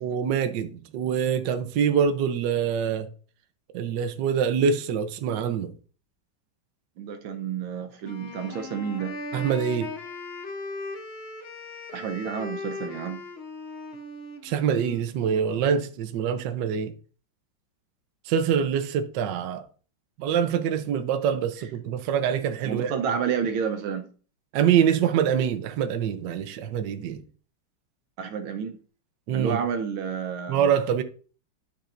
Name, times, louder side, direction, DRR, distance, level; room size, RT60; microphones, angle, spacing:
voice 1, 0.0-3.1 3.7-5.7 9.3-9.9 14.4-16.9 18.3-19.6 20.2-22.9 24.5-27.2 29.3-29.6 30.5-31.0, right 8 dB, 70° right, 1.3 m, -25 dB
voice 2, 7.0-9.2 11.9-13.2 22.6-24.1 28.2-28.8 29.3-30.7, right 7 dB, 85° right, 1.7 m, -30 dB
Wind instrument woodwind instrument, 8.0-15.9, left 3 dB, 60° left, 0.6 m, -38 dB
12.0 x 5.6 x 2.6 m
omnidirectional pair, 2.2 m